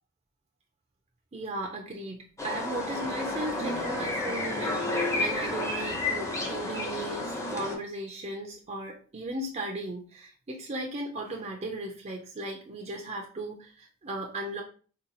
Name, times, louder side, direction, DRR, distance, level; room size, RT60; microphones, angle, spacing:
voice 1, 1.3-14.6, right 1 dB, 35° right, 0 dB, 0.5 m, -36 dB
sound 1, 2.4-7.7, left 2 dB, 15° left, 0.7 m, -31 dB
3.8 x 2.3 x 2.7 m, 0.40 s
head